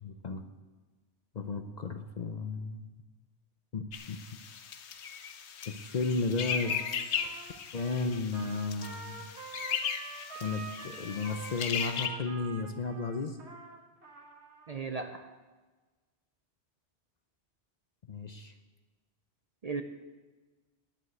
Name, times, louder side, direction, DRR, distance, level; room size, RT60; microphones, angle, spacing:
voice 1, 0.0-0.4 1.3-2.9 3.7-4.2 5.7-6.8 7.2-7.4 7.7-9.3 10.4-13.4 18.1-18.5, left 4 dB, 45° left, 8 dB, 0.6 m, -34 dB
sound 1, 3.9-12.1, left 7 dB, 75° left, 1.0 m, -37 dB
Trumpet, 6.4-14.7, right 4 dB, 70° right, 1.8 m, -47 dB
voice 2, 14.7-15.3 19.6-19.8, right 4 dB, 45° right, 7 dB, 0.6 m, -36 dB
11.0 x 8.0 x 7.9 m, 1.3 s
omnidirectional pair, 1.2 m